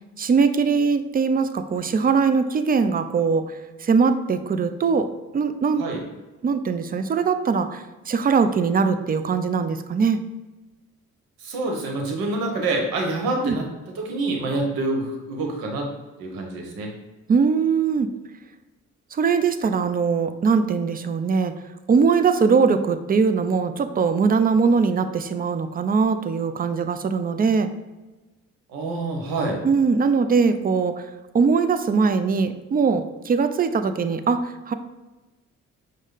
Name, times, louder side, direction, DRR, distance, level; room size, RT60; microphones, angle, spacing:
voice 1, 0.2-3.5 3.8-5.1 5.3-5.9 6.4-10.2 13.4-13.6 17.3-18.1 19.1-21.5 21.9-27.7 29.6-31.0 31.3-34.7, right 5 dB, 25° right, 10 dB, 0.4 m, -21 dB
voice 2, 11.4-13.7 13.9-15.9 16.2-16.9 28.7-29.6, right 2 dB, 70° right, 1 dB, 1.0 m, -26 dB
5.1 x 2.2 x 3.8 m, 1.1 s
hypercardioid pair, 40°, 37 cm